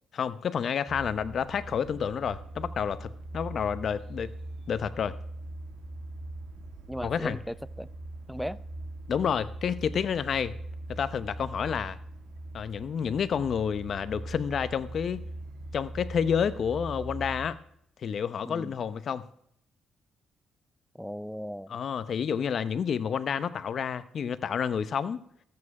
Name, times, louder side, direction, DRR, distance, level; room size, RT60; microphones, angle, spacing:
voice 1, 0.1-4.3 4.7-5.2 7.0-7.4 9.1-10.6 10.9-12.0 12.5-15.3 15.7-17.6 18.0-19.2 21.7-25.2, left 7 dB, 55° left, 0.7 m, -29 dB
sound 1, 0.9-17.5, right 1 dB, 70° right, 2.1 m, -41 dB
voice 2, 6.9-7.9 8.3-8.6 18.4-18.7 21.0-21.7, equal, ahead, 0.4 m, -37 dB
13.5 x 8.7 x 4.8 m
cardioid pair, 90°, 0 cm